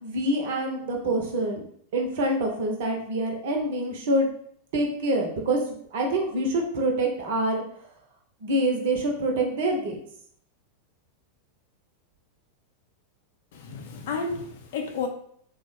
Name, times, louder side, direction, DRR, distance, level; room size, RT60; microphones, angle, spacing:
voice 1, 0.0-1.7 1.9-4.3 4.7-5.6 5.9-7.6 8.4-10.0, right 1 dB, 55° right, 2 dB, 0.7 m, -26 dB
voice 2, 13.5-15.1, left 4 dB, 55° left, 5 dB, 0.5 m, -32 dB
3.3 x 2.1 x 3.1 m, 0.64 s
figure-of-eight pair, 90°, 0 cm